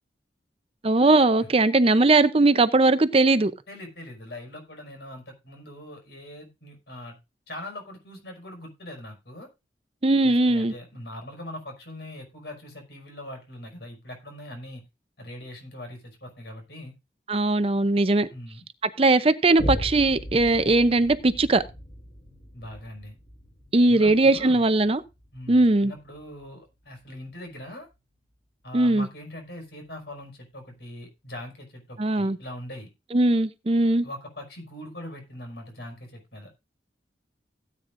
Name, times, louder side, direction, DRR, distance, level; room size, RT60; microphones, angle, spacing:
voice 1, 0.8-3.5 10.0-10.7 17.3-18.3 19.0-21.6 23.7-25.0 25.5-25.9 28.7-29.1 32.0-32.4 33.1-34.1, right 2 dB, 35° right, 0.6 m, -20 dB
voice 2, 3.7-7.2 7.5-9.5 10.2-14.8 15.2-16.9 18.3-18.6 22.5-23.2 23.8-24.7 25.3-27.9 28.6-32.9 34.0-36.5, left 1 dB, 70° left, 5.7 m, -41 dB
Boom, 19.6-26.5 27.0-27.1, equal, 40° left, 6.9 m, -37 dB
16.5 x 9.0 x 2.6 m
head